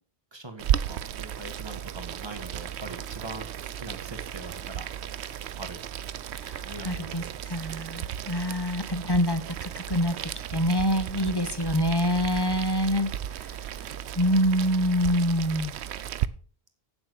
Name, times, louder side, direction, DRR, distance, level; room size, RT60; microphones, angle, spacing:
voice 1, 0.3-4.9 5.5-5.8 6.6-7.7 11.1-11.3, right 2 dB, 25° right, 6 dB, 1.8 m, -42 dB
Boiling, 0.6-16.3, right 10 dB, 85° right, 0.9 m, -34 dB
voice 2, 6.8-7.2 7.5-10.2 10.5-13.1 14.2-15.7, equal, 25° left, 10 dB, 0.8 m, -25 dB
9.1 x 7.7 x 6.4 m, 0.43 s
omnidirectional pair, 1.1 m